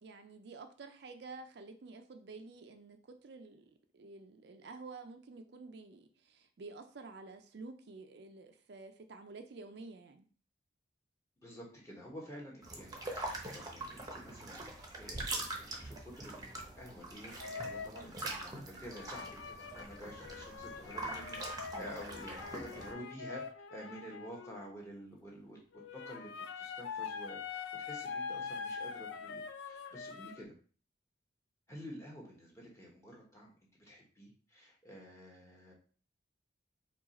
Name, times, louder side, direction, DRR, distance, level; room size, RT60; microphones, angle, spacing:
voice 1, 0.0-10.3 22.8-23.0 23.9-24.0, right 3 dB, 60° right, 7 dB, 0.4 m, -50 dB
voice 2, 11.4-23.4 23.7-30.6 31.7-33.5 33.8-35.7, equal, 15° left, -2 dB, 1.1 m, -50 dB
sound 1, 12.6-22.9, right 2 dB, 20° right, 0.7 m, -43 dB
sound 2, 17.4-18.0 18.9-24.6 25.7-30.4, left 5 dB, 75° left, 0.4 m, -44 dB
4.6 x 2.4 x 4.2 m, 0.40 s
head